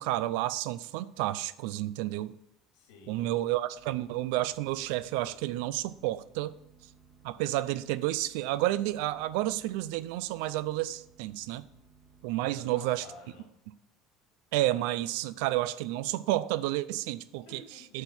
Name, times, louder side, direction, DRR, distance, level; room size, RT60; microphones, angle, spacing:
voice 1, 0.0-2.4 3.1-6.5 7.2-11.6 12.2-13.1 14.5-17.6 17.9-18.0, right 15 dB, 85° right, 0.4 m, -30 dB
voice 2, 2.7-3.3 12.4-13.5 17.4-18.0, left 3 dB, 85° left, 2.7 m, -52 dB
sound 1, 3.7-12.5, right 6 dB, 35° right, 1.6 m, -60 dB
7.8 x 4.5 x 7.0 m
cardioid pair, 160°, 0 cm